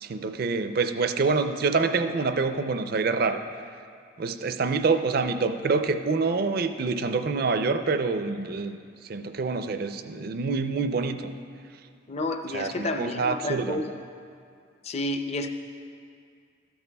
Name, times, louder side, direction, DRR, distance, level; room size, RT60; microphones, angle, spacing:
voice 1, 0.0-3.4 4.2-8.8 9.1-11.3 12.5-13.8, right 4 dB, 50° right, 9 dB, 0.4 m, -26 dB
voice 2, 12.1-13.9 14.8-15.5, left 2 dB, 30° left, 6 dB, 0.5 m, -30 dB
13.5 x 12.0 x 2.2 m, 2.3 s
head